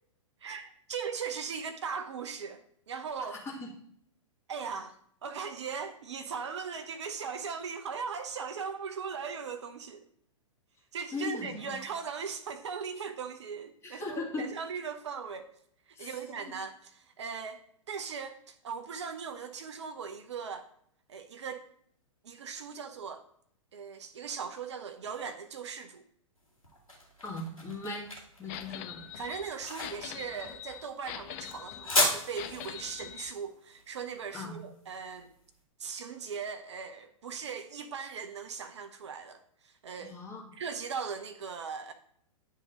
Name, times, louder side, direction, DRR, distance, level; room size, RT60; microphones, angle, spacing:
voice 1, 0.4-3.4 4.5-5.0 5.2-10.0 10.9-15.5 16.0-20.7 21.1-21.7 22.2-23.2 23.7-26.0 29.1-35.3 35.8-40.2 40.5-41.9, right 6 dB, 55° right, 0.7 m, -39 dB
voice 2, 3.3-3.7 11.1-11.8 13.8-14.5 15.9-16.2 27.2-28.1 28.4-29.0 34.3-34.6 40.0-40.5, left 3 dB, 15° left, 2.0 m, -38 dB
sound 1, 26.4-35.4, left 1 dB, 85° left, 2.2 m, -35 dB
sound 2, 28.5-33.3, left 12 dB, 30° left, 0.5 m, -43 dB
10.0 x 3.6 x 5.1 m
figure-of-eight pair, 110°, 17 cm